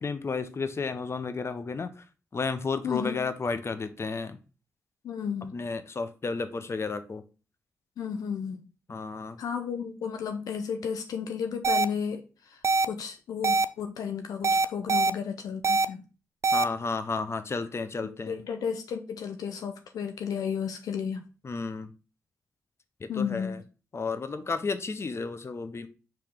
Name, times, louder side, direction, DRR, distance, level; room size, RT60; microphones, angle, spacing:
voice 1, 0.0-2.0 2.3-4.4 5.5-7.2 8.9-9.4 16.5-18.4 21.4-21.9 23.0-23.6 23.9-25.9, left 4 dB, 45° left, 0.7 m, -32 dB
voice 2, 2.8-3.2 5.0-5.6 8.0-8.7 9.4-16.0 18.0-21.2 23.1-23.6, left 7 dB, 85° left, 0.5 m, -33 dB
sound 1, 11.6-11.8 12.6-12.9 13.4-13.6 14.4-15.1 15.6-15.9 16.4-16.6, right 3 dB, 50° right, 0.3 m, -23 dB
4.8 x 3.0 x 3.6 m
supercardioid pair, 45°, 6 cm